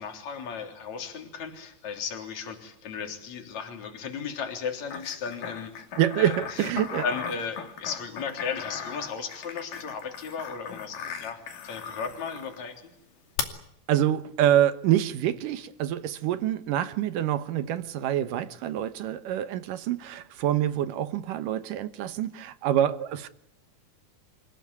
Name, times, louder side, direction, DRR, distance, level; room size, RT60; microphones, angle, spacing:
voice 1, 0.0-5.9 6.2-6.7 7.0-12.8, left 6 dB, 55° left, 4.7 m, -35 dB
sound 1, 4.9-12.6 13.4-13.5, left 8 dB, 90° left, 4.2 m, -37 dB
voice 2, 6.0-7.1 13.9-23.3, right 11 dB, 80° right, 2.8 m, -26 dB
28.0 x 16.5 x 9.7 m
omnidirectional pair, 3.8 m